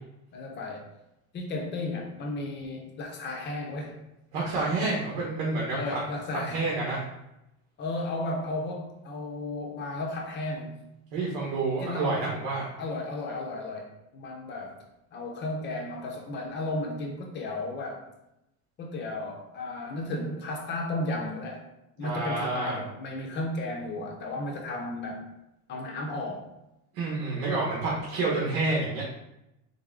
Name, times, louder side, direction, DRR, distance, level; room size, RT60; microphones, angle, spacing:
voice 1, 0.3-0.8 1.3-4.0 5.7-6.6 7.8-10.7 11.8-12.2 12.8-14.8 15.1-18.1 18.8-21.6 22.0-25.3 25.7-26.5, left 2 dB, 25° left, 1 dB, 0.6 m, -34 dB
voice 2, 4.3-6.0 6.5-7.0 11.1-12.7 22.0-22.8 26.9-29.0, right 3 dB, 75° right, -4 dB, 1.4 m, -29 dB
4.0 x 3.4 x 3.7 m, 0.87 s
cardioid pair, 180°, 40 cm